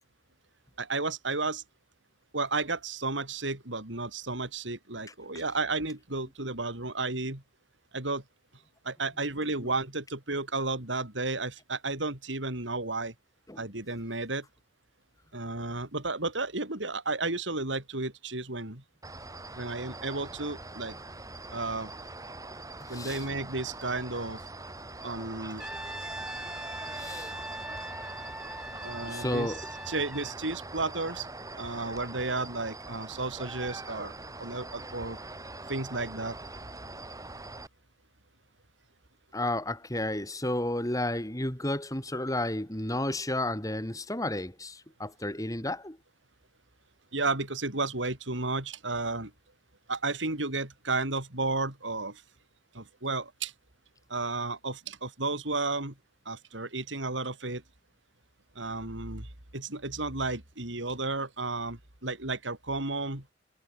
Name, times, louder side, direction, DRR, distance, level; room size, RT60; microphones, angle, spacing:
voice 1, 0.8-1.6 2.3-7.4 7.9-8.2 8.8-13.1 13.6-14.5 15.3-18.8 19.6-20.9 21.5-21.9 22.9-24.4 25.0-25.6 28.8-29.6 29.9-31.3 31.6-34.1 34.4-35.2 35.7-36.4 47.1-49.3 49.9-52.2 52.7-53.5 54.1-56.0 56.2-57.6 58.5-63.3, right 3 dB, 80° right, 4.6 m, -33 dB
sound 1, 19.0-37.7, right 2 dB, 20° right, 6.3 m, -43 dB
voice 2, 22.8-23.2 26.9-27.3 29.1-29.6 39.3-46.0, left 1 dB, 20° left, 4.2 m, -32 dB
Brass instrument, 25.6-30.4, right 1 dB, 5° right, 1.8 m, -41 dB
head